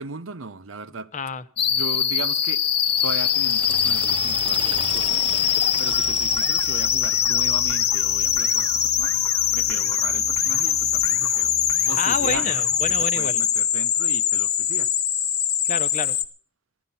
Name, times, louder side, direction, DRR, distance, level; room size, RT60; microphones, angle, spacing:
voice 1, 0.0-1.1 1.6-2.6 3.0-5.2 5.8-9.2 9.5-11.5 11.8-12.6 13.1-14.9, right 3 dB, 80° right, 0.9 m, -37 dB
voice 2, 1.1-1.4 11.9-13.4 15.6-16.2, left 5 dB, 40° left, 0.9 m, -28 dB
sound 1, 1.6-16.2, left 9 dB, 55° left, 1.2 m, -22 dB
Liquid, 2.6-7.2, right 5 dB, 25° right, 0.6 m, -37 dB
sound 2, 5.9-13.0, left 1 dB, 15° left, 1.0 m, -40 dB
15.5 x 12.5 x 5.6 m
head